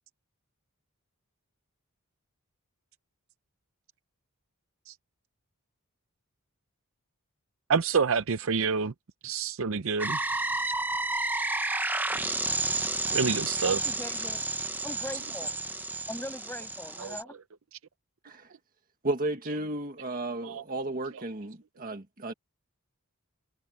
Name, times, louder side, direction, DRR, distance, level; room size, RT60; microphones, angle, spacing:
voice 1, 7.7-8.9 9.2-10.2 13.1-13.8 17.0-17.1 20.4-20.6 21.1-21.2 22.3-22.4, right 5 dB, 65° right, 0.6 m, -27 dB
sound 1, 10.0-17.2, right 2 dB, 10° right, 0.8 m, -31 dB
voice 2, 13.6-14.5 14.8-15.5 16.1-17.4, left 1 dB, 10° left, 7.2 m, -40 dB
voice 3, 19.0-22.3, right 2 dB, 40° right, 1.7 m, -33 dB
head